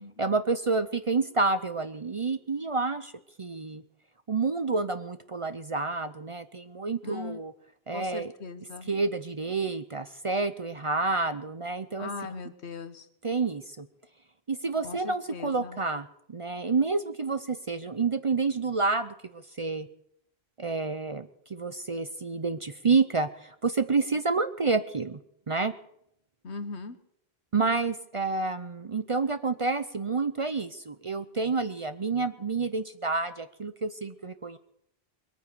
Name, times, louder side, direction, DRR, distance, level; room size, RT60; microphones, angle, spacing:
voice 1, 0.2-3.1 3.4-3.8 4.3-7.5 7.9-8.3 8.9-12.1 13.2-13.9 14.5-19.9 20.6-25.2 25.5-25.7 27.5-34.6, right 4 dB, 40° right, 11 dB, 0.6 m, -29 dB
voice 2, 7.0-7.4 7.9-8.9 12.0-13.1 14.8-15.8 26.4-27.0, left 4 dB, 90° left, 10 dB, 1.5 m, -39 dB
22.0 x 9.2 x 6.8 m, 0.75 s
omnidirectional pair, 1.1 m